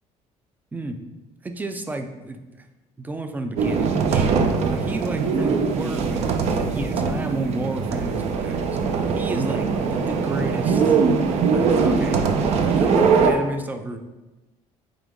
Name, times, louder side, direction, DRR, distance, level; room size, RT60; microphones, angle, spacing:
voice 1, 1.4-2.7 3.0-4.4 4.7-8.8 9.1-11.0 11.5-12.2 12.6-14.0, right 2 dB, 15° right, 7 dB, 0.4 m, -31 dB
sound 1, 3.6-13.3, right 5 dB, 60° right, 0.7 m, -21 dB
8.9 x 3.1 x 3.6 m, 1.1 s
cardioid pair, 150°, 13 cm